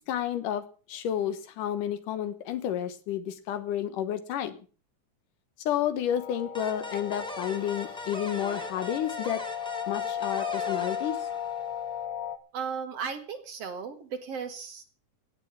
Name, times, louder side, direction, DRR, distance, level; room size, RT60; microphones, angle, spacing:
voice 1, 0.1-0.6 0.9-4.6 5.7-9.4 9.9-11.2, left 10 dB, 80° left, 12 dB, 2.8 m, -31 dB
sound 1, 6.1-12.4, left 9 dB, 60° left, 2.2 m, -35 dB
sound 2, 6.5-12.0, equal, ahead, 1.4 m, -40 dB
voice 2, 12.5-14.9, right 6 dB, 55° right, 9 dB, 2.2 m, -35 dB
16.5 x 8.2 x 7.3 m, 0.39 s
omnidirectional pair, 3.7 m